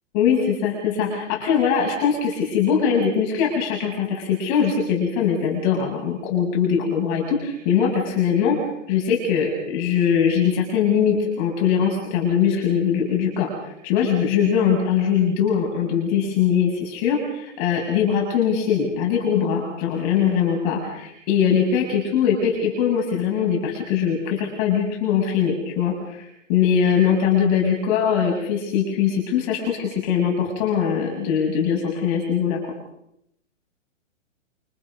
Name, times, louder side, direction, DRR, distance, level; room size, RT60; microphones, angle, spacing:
voice 1, 0.1-8.6 8.9-32.6, left 7 dB, 30° left, -1 dB, 7.1 m, -21 dB
29.0 x 27.0 x 5.5 m, 0.78 s
hypercardioid pair, 160°, 39 cm